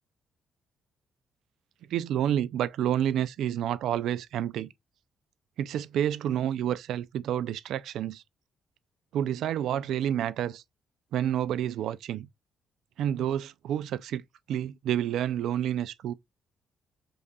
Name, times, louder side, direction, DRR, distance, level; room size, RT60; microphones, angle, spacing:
voice 1, 1.9-4.7 5.6-8.2 9.1-10.6 11.1-12.3 13.0-16.1, right 10 dB, 80° right, 0.4 m, -29 dB
5.2 x 3.7 x 2.3 m
cardioid pair, 90°, 0 cm